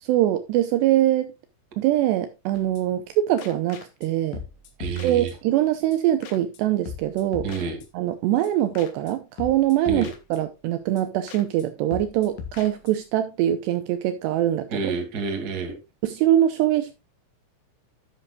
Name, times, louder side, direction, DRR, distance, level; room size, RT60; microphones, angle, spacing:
voice 1, 0.0-1.3 1.8-4.4 5.0-7.5 7.9-14.9 16.0-17.0, right 13 dB, 80° right, 2.6 m, -23 dB
sound 1, 2.5-3.1 3.4-4.1 4.3-5.6 5.9-6.0 6.2-6.6 6.9-8.2 8.4-8.5 8.8-9.1 9.4-10.7 11.0-11.1 11.3-11.7 11.9-13.1, left 7 dB, 75° left, 3.9 m, -40 dB
voice 2, 4.8-5.3 7.4-7.8 9.9-10.1 14.7-15.8, right 5 dB, 30° right, 1.8 m, -28 dB
11.0 x 10.0 x 2.4 m
omnidirectional pair, 5.5 m